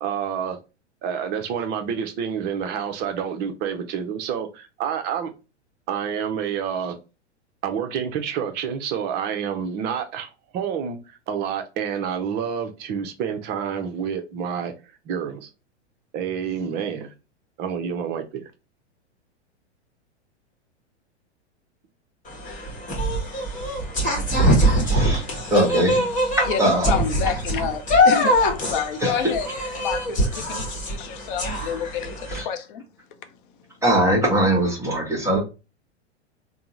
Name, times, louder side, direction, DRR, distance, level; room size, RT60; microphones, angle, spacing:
voice 1, 0.0-0.6 1.0-5.3 5.9-7.0 7.6-14.7 15.0-15.5 16.1-17.1 17.6-18.5, right 7 dB, 30° right, 0.5 m, -28 dB
sound 1, 22.3-32.4, equal, 20° left, 1.1 m, -23 dB
voice 2, 24.8-25.2 25.5-26.0 26.4-26.9 29.0-29.3 32.3-32.5 33.8-35.4, right 1 dB, 10° right, 1.1 m, -21 dB
voice 3, 26.5-29.5 29.8-32.8, left 8 dB, 50° left, 0.6 m, -28 dB
3.5 x 2.0 x 2.8 m
hypercardioid pair, 100°, 35 cm